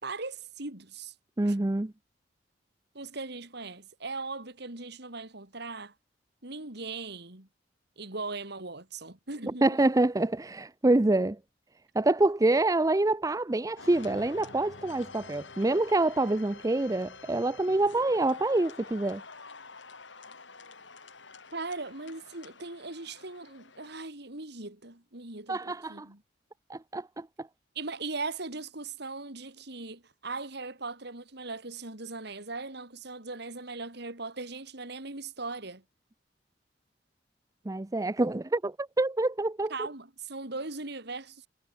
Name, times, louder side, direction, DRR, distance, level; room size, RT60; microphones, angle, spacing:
voice 1, 0.0-1.1 1.4-1.6 2.9-5.9 6.4-7.5 8.0-9.8 21.5-25.6 25.9-26.2 27.8-35.8 39.7-41.5, right 3 dB, 65° right, 3.8 m, -39 dB
voice 2, 1.4-1.9 9.6-11.4 11.9-19.2 25.5-26.1 26.7-27.5 37.7-39.7, right 2 dB, 20° right, 0.6 m, -26 dB
sound 1, 13.8-24.1, left 4 dB, 85° left, 8.0 m, -48 dB
head